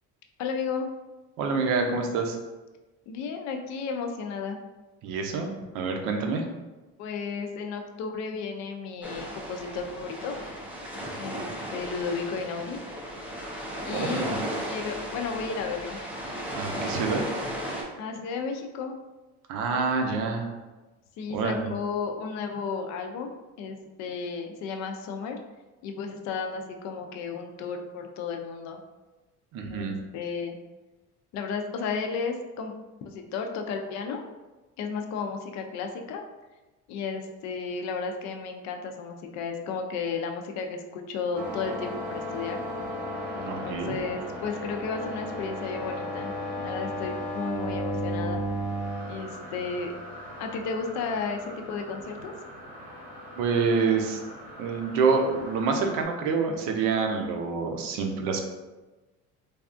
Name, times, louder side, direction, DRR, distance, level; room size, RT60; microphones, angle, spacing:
voice 1, 0.4-0.9 3.1-4.6 7.0-10.4 11.2-12.8 13.8-16.0 18.0-18.9 21.2-25.4 25.8-28.8 29.7-30.6 31.3-32.7 33.0-34.2 34.8-36.2 36.9-42.6 43.4-46.3 46.6-48.4 49.1-49.9 50.4-52.3, left 5 dB, 60° left, 4 dB, 0.4 m, -33 dB
voice 2, 1.4-2.4 5.0-5.5 5.7-6.4 13.9-14.4 16.5-17.2 19.5-20.5 21.3-21.7 29.5-30.0 43.4-44.0 53.4-54.2 54.6-58.4, right 4 dB, 85° right, 3 dB, 0.6 m, -27 dB
sound 1, 9.0-17.8, equal, 5° right, 0.3 m, -35 dB
sound 2, 41.3-56.0, equal, 25° right, 0.8 m, -36 dB
3.3 x 2.3 x 2.5 m, 1.1 s
cardioid pair, 150°, 31 cm